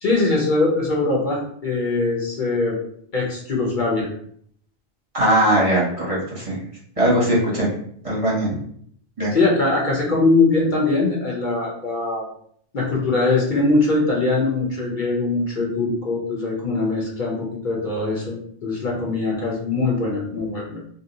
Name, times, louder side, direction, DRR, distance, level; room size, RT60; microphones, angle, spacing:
voice 1, 0.0-2.8 3.1-4.1 7.0-7.1 9.3-12.2 12.7-20.8, left 3 dB, 55° left, -3 dB, 0.8 m, -22 dB
voice 2, 5.1-6.6 7.0-7.7 8.0-8.5 9.2-9.3, right 1 dB, 35° right, -6 dB, 0.9 m, -20 dB
2.6 x 2.0 x 3.8 m, 0.65 s
omnidirectional pair, 1.1 m